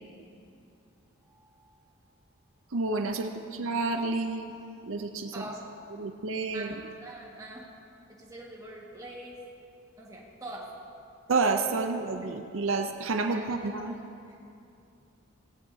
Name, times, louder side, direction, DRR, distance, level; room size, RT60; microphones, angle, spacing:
voice 1, 2.7-4.5 4.9-5.4 5.9-6.9 11.3-13.9, right 3 dB, 70° right, 6 dB, 0.6 m, -30 dB
voice 2, 5.3-5.7 6.5-7.7 8.2-9.4 10.0-10.7 11.8-11.9 13.2-14.0, right 1 dB, 15° right, -3 dB, 1.7 m, -44 dB
17.5 x 17.0 x 2.8 m, 2.7 s
head